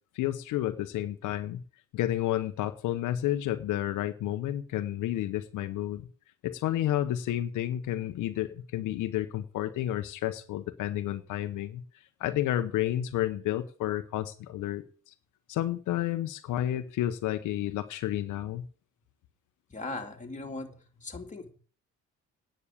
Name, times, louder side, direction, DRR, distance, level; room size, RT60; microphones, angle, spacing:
voice 1, 0.1-1.6 1.9-6.1 6.4-11.8 12.2-15.1 15.5-18.6, left 13 dB, 85° left, 9 dB, 1.0 m, -31 dB
voice 2, 19.7-21.5, left 2 dB, 25° left, 3 dB, 2.8 m, -39 dB
9.8 x 6.5 x 8.5 m, 0.41 s
cardioid pair, 90°, 30 cm